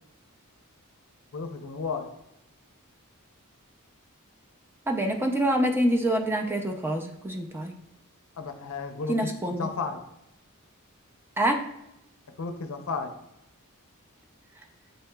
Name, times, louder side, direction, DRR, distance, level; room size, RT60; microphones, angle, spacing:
voice 1, 1.3-2.1 8.4-10.0 12.4-13.1, left 4 dB, 65° left, 7 dB, 0.5 m, -33 dB
voice 2, 4.9-7.7 9.1-9.7 11.4-11.6, right 1 dB, 10° right, 3 dB, 0.4 m, -26 dB
7.7 x 2.8 x 2.2 m, 0.83 s
head